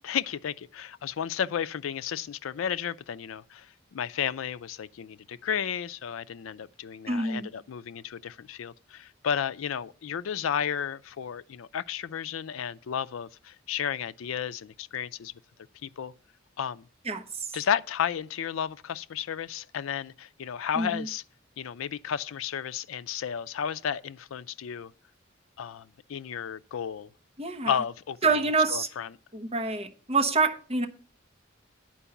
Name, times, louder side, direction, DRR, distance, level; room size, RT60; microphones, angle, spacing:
voice 1, 0.0-15.3 15.8-16.1 16.6-16.9 17.5-21.2 21.6-24.9 25.6-27.1 27.7-28.2 28.7-29.1, left 8 dB, 85° left, 0.4 m, -33 dB
voice 2, 7.1-7.5 17.0-17.6 20.7-21.1 27.4-27.8 28.2-28.9 29.3-30.9, right 3 dB, 30° right, 1.0 m, -27 dB
10.0 x 4.6 x 6.9 m
head